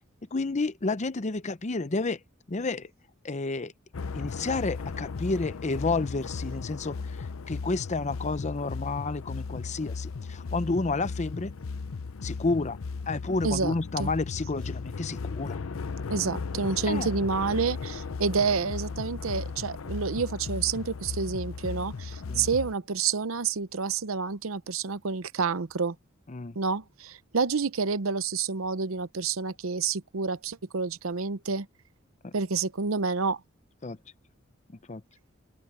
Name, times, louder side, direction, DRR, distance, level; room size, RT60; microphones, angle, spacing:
voice 1, 0.3-2.2 2.5-2.9 3.2-3.7 4.1-11.5 12.2-12.8 13.1-15.6 16.9-17.1 22.3-22.5 26.3-26.6 32.2-32.3 33.8-34.0 34.7-35.0, left 3 dB, 35° left, 0.7 m, -30 dB
sound 1, 3.9-22.7, left 4 dB, 80° left, 0.6 m, -36 dB
voice 2, 16.1-26.0 26.6-31.7 32.3-33.4, right 5 dB, 85° right, 0.8 m, -29 dB
open air
head